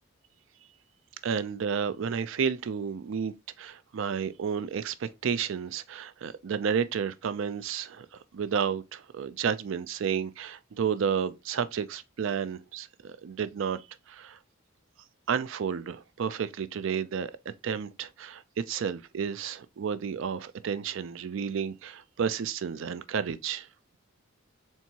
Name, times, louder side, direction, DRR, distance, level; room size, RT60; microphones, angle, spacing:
voice 1, 1.2-8.1 8.3-14.4 15.3-17.3 17.6-23.7, right 7 dB, 65° right, 0.4 m, -31 dB
4.4 x 3.5 x 2.8 m
head